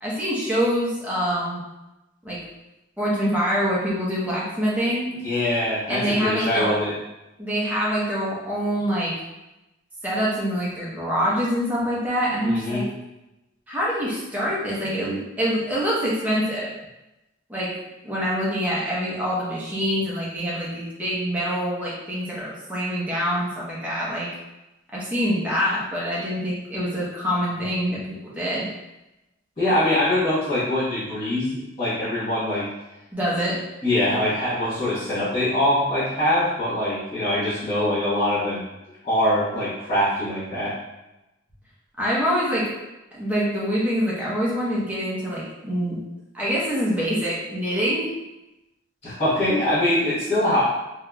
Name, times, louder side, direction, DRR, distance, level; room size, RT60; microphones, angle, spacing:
voice 1, 0.0-1.6 2.2-2.4 3.0-5.1 5.9-6.7 7.4-9.1 10.0-12.8 13.7-16.7 17.5-17.7 18.0-24.3 24.9-28.7 33.1-33.6 42.0-42.7 43.1-46.0 46.3-48.1, equal, 10° right, -7 dB, 0.8 m, -25 dB
voice 2, 5.2-6.9 12.4-12.8 29.6-32.7 33.8-38.7 39.0-40.7 49.0-50.6, left 1 dB, 30° left, -15 dB, 1.1 m, -23 dB
3.6 x 2.8 x 2.2 m, 0.97 s
head